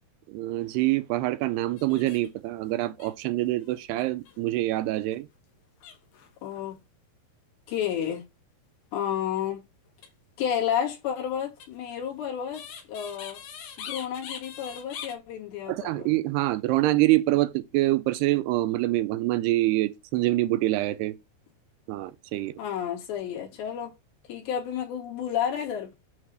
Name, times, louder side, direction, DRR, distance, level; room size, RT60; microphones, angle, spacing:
voice 1, 0.3-5.3 15.7-21.2 21.9-22.5, right 17 dB, 80° right, 2.6 m, -25 dB
sound 1, 1.8-2.4 2.7-2.8 3.0-4.4 4.9-5.2 5.8-6.6 9.9-10.1 11.6-15.1, left 8 dB, 70° left, 3.3 m, -42 dB
voice 2, 6.4-6.8 7.7-8.2 8.9-9.6 10.4-13.4 13.8-16.1 22.6-23.9 24.3-26.0, left 9 dB, 85° left, 4.7 m, -31 dB
9.4 x 3.6 x 6.2 m
omnidirectional pair, 4.8 m